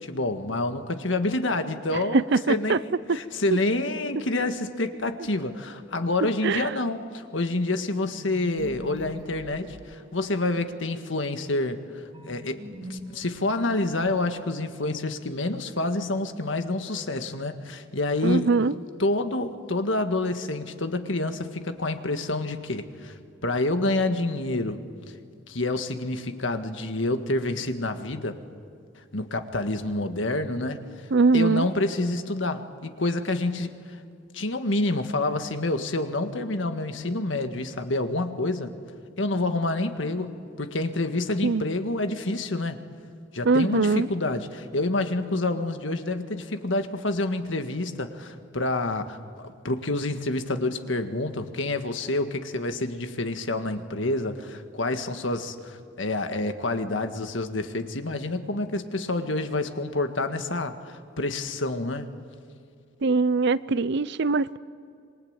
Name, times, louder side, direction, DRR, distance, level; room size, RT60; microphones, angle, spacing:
voice 1, 0.0-18.5 19.0-24.8 25.5-28.4 29.1-31.1 31.3-34.0 34.3-38.7 39.2-42.8 43.3-49.2 49.6-62.1, left 2 dB, 70° left, 1.8 m, -28 dB
voice 2, 1.9-2.8 3.1-3.2 6.4-6.7 18.2-18.7 31.1-31.7 41.4-41.6 43.4-44.1 63.0-64.6, right 4 dB, 65° right, 0.6 m, -22 dB
sound 1, 8.2-10.7 12.1-14.6, equal, 25° right, 3.0 m, -43 dB
26.5 x 23.5 x 8.9 m
head